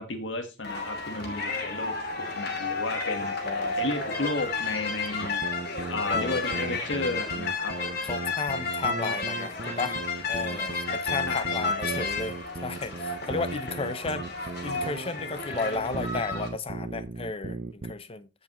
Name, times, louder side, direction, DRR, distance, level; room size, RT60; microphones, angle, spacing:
voice 1, 0.0-5.4 5.9-7.8 11.2-11.8, left 2 dB, 80° left, 1.5 m, -33 dB
sound 1, 0.6-16.5, left 3 dB, 55° left, 2.8 m, -32 dB
voice 2, 3.4-3.8 6.1-6.4 8.0-10.0 10.3-18.3, left 3 dB, 30° left, 0.7 m, -34 dB
sound 2, 5.2-17.9, right 3 dB, 45° right, 0.6 m, -37 dB
15.0 x 5.5 x 3.0 m
head